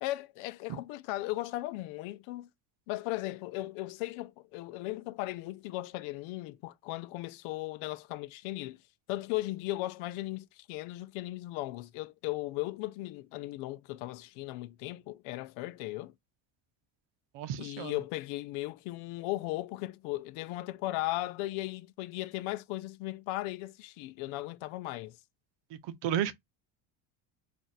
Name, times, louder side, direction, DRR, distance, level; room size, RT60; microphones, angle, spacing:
voice 1, 0.0-2.5 2.9-8.8 9.1-16.1 17.6-25.2, left 18 dB, 75° left, 0.6 m, -37 dB
voice 2, 17.3-17.9 25.7-26.3, right 10 dB, 60° right, 0.7 m, -33 dB
2.6 x 2.4 x 4.0 m
cardioid pair, 110°, 49 cm